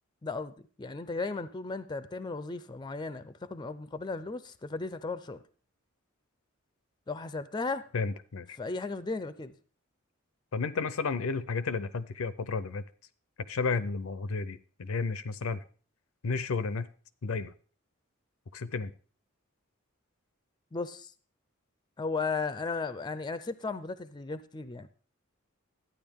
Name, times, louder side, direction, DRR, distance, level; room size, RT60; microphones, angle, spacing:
voice 1, 0.2-5.4 7.1-7.9 8.6-9.5 20.7-21.1 22.0-24.9, left 3 dB, 20° left, 0.4 m, -35 dB
voice 2, 7.9-8.6 10.5-12.8 13.4-15.6 16.2-16.9 17.2-17.5 18.5-18.9, left 4 dB, 75° left, 0.5 m, -32 dB
12.0 x 9.4 x 3.6 m
head